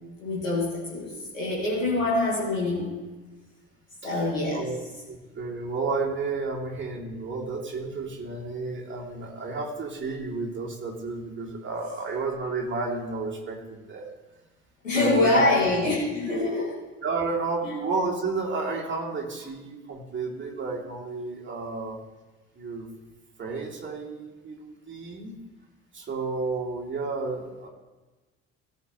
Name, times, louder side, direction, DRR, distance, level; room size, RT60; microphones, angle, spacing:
voice 1, 0.2-2.9 4.0-4.7 14.8-16.7 17.6-17.7, left 2 dB, 85° left, -7 dB, 2.1 m, -25 dB
voice 2, 5.1-14.1 14.9-15.5 16.2-16.5 17.0-22.0 22.6-22.9 23.4-25.3 25.9-27.7, right 3 dB, 30° right, -2 dB, 2.9 m, -32 dB
17.0 x 7.0 x 3.2 m, 1.2 s
figure-of-eight pair, 55°, 38 cm